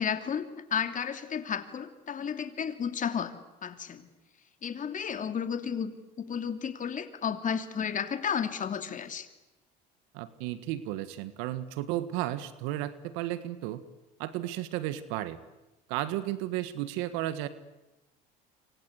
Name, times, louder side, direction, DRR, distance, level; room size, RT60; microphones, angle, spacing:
voice 1, 0.0-3.3 3.6-4.1 4.6-9.3, left 7 dB, 40° left, 9 dB, 2.9 m, -32 dB
voice 2, 10.1-13.8 14.2-15.4 15.9-17.5, right 14 dB, 80° right, 13 dB, 1.7 m, -33 dB
27.5 x 25.0 x 8.3 m, 1.0 s
supercardioid pair, 85°, 21 cm